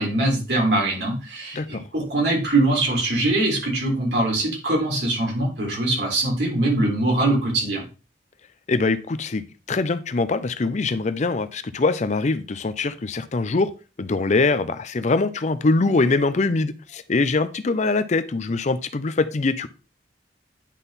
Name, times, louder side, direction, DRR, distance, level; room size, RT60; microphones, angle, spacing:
voice 1, 0.0-7.8, right 2 dB, 65° right, 3.2 m, -22 dB
voice 2, 8.7-13.7 14.0-19.7, left 3 dB, 40° left, 0.5 m, -23 dB
9.9 x 3.7 x 4.1 m
head